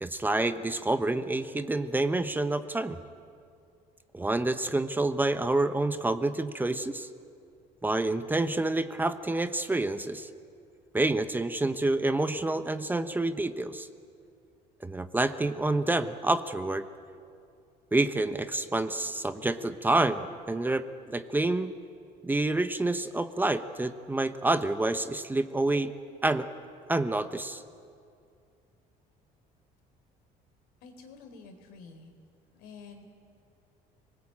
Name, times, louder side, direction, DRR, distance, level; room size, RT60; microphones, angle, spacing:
voice 1, 0.0-3.0 4.1-7.1 7.8-10.3 10.9-13.9 14.8-16.9 17.9-21.7 22.2-25.9 26.2-26.5 26.9-27.6, right 2 dB, 10° right, 10 dB, 1.0 m, -28 dB
voice 2, 30.8-32.1 32.5-33.1, left 4 dB, 85° left, 5 dB, 3.9 m, -49 dB
26.0 x 19.5 x 8.8 m, 2.4 s
cardioid pair, 110°, 16 cm